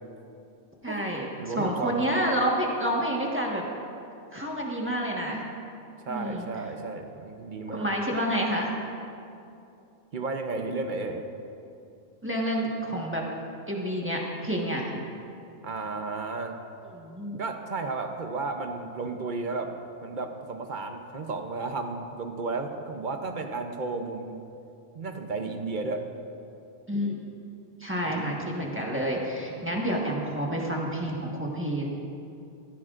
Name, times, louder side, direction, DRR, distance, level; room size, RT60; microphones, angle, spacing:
voice 1, 0.8-3.6 4.3-5.4 6.1-6.5 7.7-8.7 12.2-13.2 13.7-14.8 16.9-17.4 26.9-27.2 27.8-31.9, equal, 10° right, -3 dB, 1.4 m, -29 dB
voice 2, 1.4-2.1 6.0-7.9 10.1-11.2 15.6-16.6 17.4-24.4 24.9-26.0 28.0-29.0 29.5-29.8, right 3 dB, 50° right, 5 dB, 0.9 m, -33 dB
15.5 x 15.0 x 2.5 m, 2.6 s
omnidirectional pair, 1.1 m